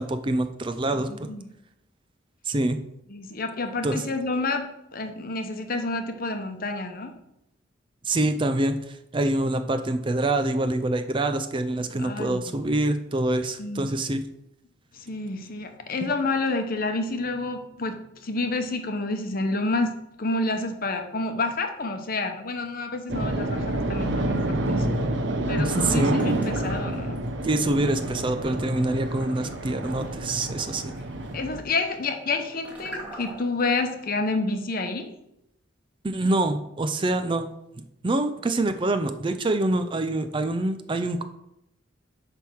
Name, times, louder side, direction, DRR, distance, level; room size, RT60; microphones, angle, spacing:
voice 1, 0.0-1.3 2.5-2.8 3.8-4.0 8.0-14.2 25.6-26.1 27.4-30.9 36.0-37.5 38.0-41.2, right 2 dB, 25° right, 8 dB, 0.4 m, -25 dB
voice 2, 1.1-1.5 3.1-7.1 12.0-12.5 13.6-13.9 14.9-24.9 25.5-27.2 31.3-35.1, left 3 dB, 50° left, 6 dB, 0.9 m, -29 dB
sound 1, 23.1-31.6, right 1 dB, 65° right, 0.9 m, -28 dB
sound 2, 26.1-27.3 27.7-33.6, right 1 dB, 10° right, 2.1 m, -44 dB
8.8 x 3.5 x 6.2 m, 0.82 s
head